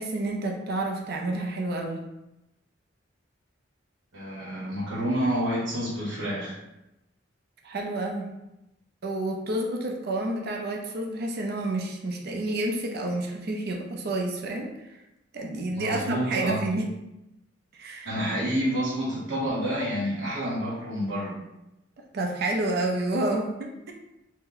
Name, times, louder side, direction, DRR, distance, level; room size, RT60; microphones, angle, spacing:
voice 1, 0.0-2.0 7.6-8.3 9.0-14.7 15.3-16.9 17.8-18.1 22.1-23.9, right 2 dB, 55° right, 1 dB, 0.5 m, -29 dB
voice 2, 4.1-6.6 15.7-16.6 18.0-21.3, equal, 80° right, -7 dB, 0.9 m, -28 dB
2.7 x 2.0 x 3.8 m, 0.92 s
head